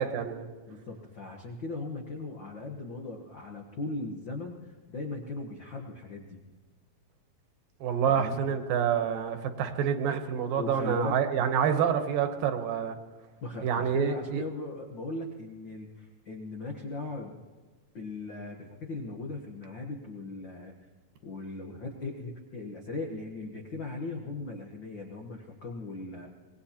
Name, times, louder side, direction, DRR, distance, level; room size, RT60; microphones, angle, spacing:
voice 1, 0.0-0.5 7.8-13.0 13.6-14.4, right 8 dB, 75° right, 7 dB, 2.7 m, -27 dB
voice 2, 0.7-6.4 8.1-8.4 10.6-11.2 13.4-17.4 17.9-20.7 21.2-26.3, left 2 dB, 85° left, 1 dB, 1.0 m, -38 dB
25.5 x 19.5 x 2.9 m, 1.4 s
omnidirectional pair, 4.1 m